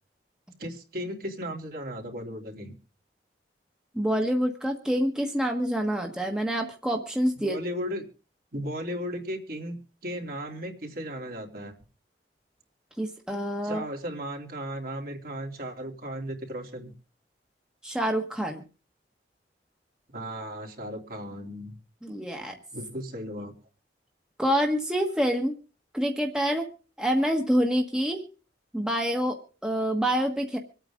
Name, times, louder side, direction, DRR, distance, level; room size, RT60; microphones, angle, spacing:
voice 1, 0.6-2.7 7.4-8.0 8.5-9.8 10.0-11.8 13.6-16.9 20.1-21.8 22.7-23.6, equal, 55° right, 1 dB, 3.2 m, -35 dB
voice 2, 3.9-7.6 13.0-13.8 17.8-18.6 22.0-22.6 24.4-25.5 25.9-26.7 27.0-28.2 28.7-29.4 29.6-30.6, equal, 5° right, 2 dB, 1.4 m, -26 dB
26.0 x 9.0 x 3.7 m, 0.35 s
head